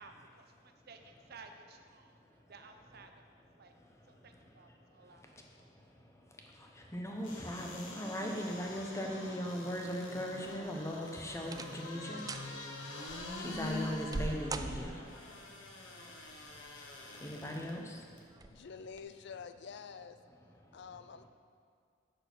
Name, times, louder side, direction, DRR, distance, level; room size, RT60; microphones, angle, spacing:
voice 1, 0.0-2.2 2.5-3.2 3.6-3.7 4.1-5.2 5.6-5.7, right 4 dB, 55° right, 6 dB, 0.8 m, -55 dB
voice 2, 2.1-2.5 3.6-18.7 20.6-20.8, equal, 15° left, 1 dB, 1.0 m, -41 dB
sound 1, 7.2-17.7 18.2-18.3, left 2 dB, 80° left, 1.3 m, -46 dB
sound 2, 10.5-10.9 11.4-11.9 12.2-12.5 13.1-15.3 16.5-17.1 17.5-17.6 18.3-18.6 18.9-19.0, right 3 dB, 20° right, 0.3 m, -41 dB
voice 3, 18.5-20.2 20.7-21.3, left 6 dB, 65° left, 10 dB, 0.5 m, -47 dB
8.2 x 6.5 x 6.2 m, 2.2 s
head